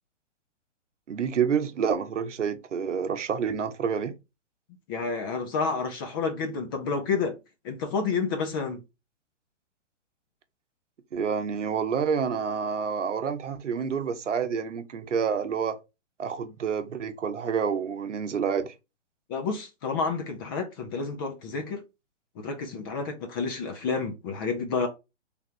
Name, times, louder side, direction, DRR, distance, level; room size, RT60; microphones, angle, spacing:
voice 1, 1.1-4.1 11.1-15.8 16.2-18.7, right 6 dB, 80° right, 0.8 m, -28 dB
voice 2, 4.9-7.4 7.6-8.8 19.3-21.8 22.4-24.9, left 4 dB, 20° left, 0.4 m, -30 dB
3.4 x 2.4 x 4.5 m
hypercardioid pair, 125°, 36 cm